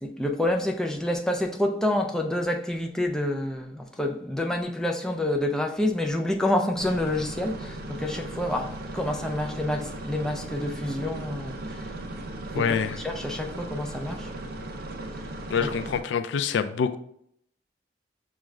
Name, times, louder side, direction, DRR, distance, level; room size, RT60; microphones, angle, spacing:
voice 1, 0.0-11.9 12.5-14.6 15.6-15.7, left 1 dB, 5° left, 0.4 m, -28 dB
sound 1, 6.8-16.0, right 1 dB, 55° right, 0.5 m, -37 dB
voice 2, 12.6-13.0 15.5-17.0, left 6 dB, 75° left, 0.3 m, -26 dB
6.1 x 2.4 x 3.2 m
head